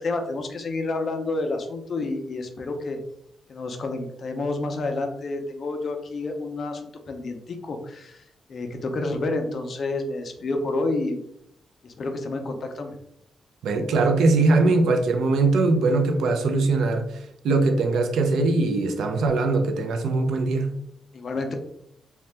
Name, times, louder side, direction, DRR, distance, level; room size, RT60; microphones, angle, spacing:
voice 1, 0.0-3.0 3.5-8.2 8.5-11.2 11.8-12.9 21.1-21.5, left 2 dB, 40° left, 5 dB, 0.4 m, -29 dB
voice 2, 13.6-17.2 17.4-20.7, right 3 dB, 85° right, 6 dB, 0.4 m, -21 dB
2.7 x 2.2 x 3.2 m, 0.73 s
wide cardioid pair, 165°, 0 cm